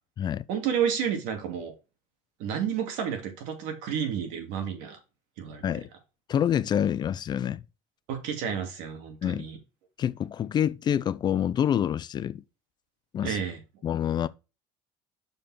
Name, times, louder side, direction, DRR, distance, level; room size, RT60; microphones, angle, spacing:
voice 1, 0.5-1.7 2.4-5.0 5.4-5.6 8.1-9.6 13.2-13.6, right 8 dB, 75° right, 2.5 m, -30 dB
voice 2, 6.3-7.6 9.2-9.4 10.0-12.4 13.1-13.4 13.8-14.3, left 9 dB, 35° left, 0.4 m, -27 dB
6.9 x 5.4 x 4.3 m
cardioid pair, 125°, 13 cm